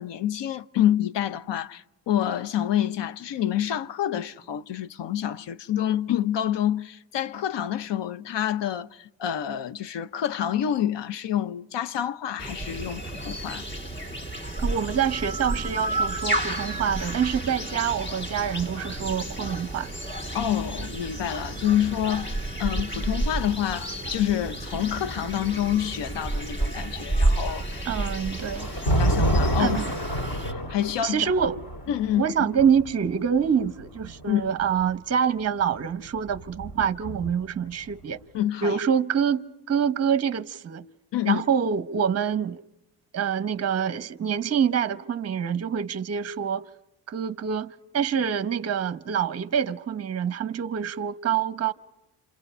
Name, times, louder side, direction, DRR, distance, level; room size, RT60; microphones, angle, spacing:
voice 1, 0.0-13.6 20.3-27.9 29.0-29.8 30.7-31.3 31.9-32.5 34.3-34.5 38.3-38.8 41.1-41.4, left 11 dB, 65° left, 1.0 m, -27 dB
sound 1, 12.4-30.5, right 1 dB, 25° left, 2.6 m, -31 dB
voice 2, 14.6-19.9 27.8-28.7 29.6-29.9 31.0-31.6 32.2-38.2 38.6-40.8 41.2-42.6 43.1-46.6 47.1-51.7, right 7 dB, 30° right, 0.9 m, -26 dB
Thunder, 27.6-34.8 35.9-37.6, right 1 dB, 50° left, 4.4 m, -29 dB
29.0 x 27.5 x 5.5 m
cardioid pair, 100°, 46 cm